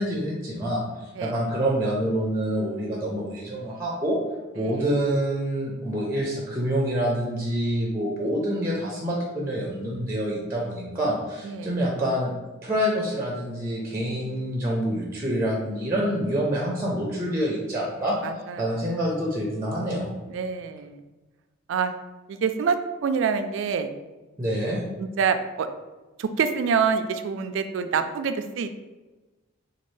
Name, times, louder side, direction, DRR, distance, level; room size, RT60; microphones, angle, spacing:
voice 1, 0.0-4.2 4.5-12.3 12.6-18.2 18.6-20.1 24.4-24.8, equal, 15° right, -3 dB, 0.5 m, -27 dB
voice 2, 4.6-4.9 11.4-11.7 14.2-14.4 14.7-14.8 18.2-18.8 20.3-21.0 21.7-21.9 22.3-23.9 25.0-25.7 26.2-28.7, right 6 dB, 70° right, 9 dB, 0.3 m, -26 dB
4.3 x 2.3 x 3.1 m, 1.2 s
head